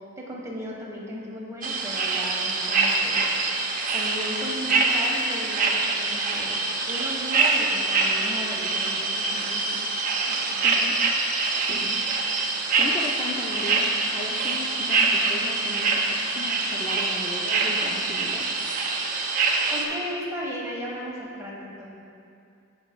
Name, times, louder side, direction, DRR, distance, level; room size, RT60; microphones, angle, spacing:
voice 1, 0.2-3.3 3.9-6.6 6.9-9.9 10.3-10.6 19.7-21.9, equal, 15° right, -4 dB, 1.2 m, -35 dB
sound 1, 1.6-19.8, right 3 dB, 40° right, 0.7 m, -25 dB
voice 2, 10.6-11.1 11.7-12.4 12.8-18.5, left 1 dB, 25° left, -2 dB, 0.4 m, -36 dB
14.5 x 5.6 x 2.2 m, 2.6 s
head